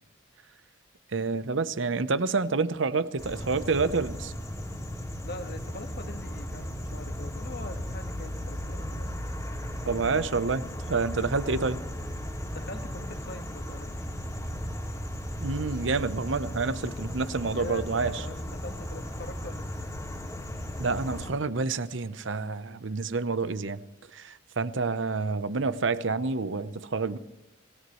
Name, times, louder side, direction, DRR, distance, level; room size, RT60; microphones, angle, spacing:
voice 1, 1.1-4.3 9.9-11.8 15.4-18.3 20.8-23.8 24.1-27.2, right 4 dB, 75° right, 0.8 m, -28 dB
sound 1, 3.2-21.3, equal, 15° left, 2.3 m, -36 dB
voice 2, 5.2-9.1 12.5-13.9 17.5-19.6, left 2 dB, 55° left, 1.6 m, -42 dB
26.5 x 16.0 x 3.1 m
head